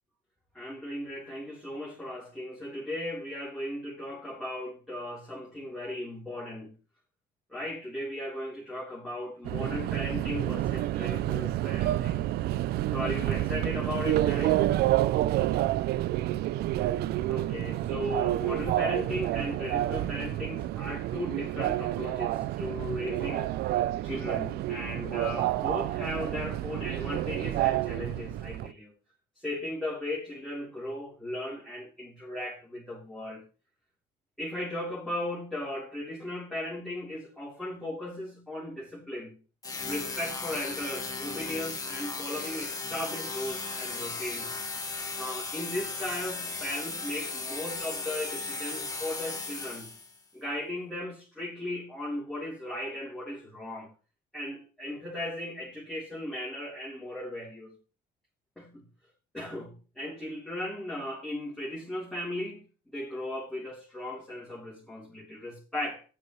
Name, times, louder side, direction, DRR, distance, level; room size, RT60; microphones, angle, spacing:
voice 1, 0.5-6.7 7.5-12.2 12.9-14.7 17.3-23.5 24.0-28.9 29.4-33.4 34.4-39.4 39.9-44.5 45.2-49.9 50.3-53.9 54.3-57.8 58.6-58.8 59.3-62.6 62.9-66.0, left 1 dB, 5° left, -6 dB, 3.6 m, -37 dB
Subway metro underground, 9.4-28.7, right 14 dB, 70° right, 0.5 m, -29 dB
sound 1, 39.6-50.2, left 3 dB, 20° left, 1.9 m, -36 dB
13.0 x 9.2 x 3.1 m, 0.35 s
cardioid pair, 110°, 17 cm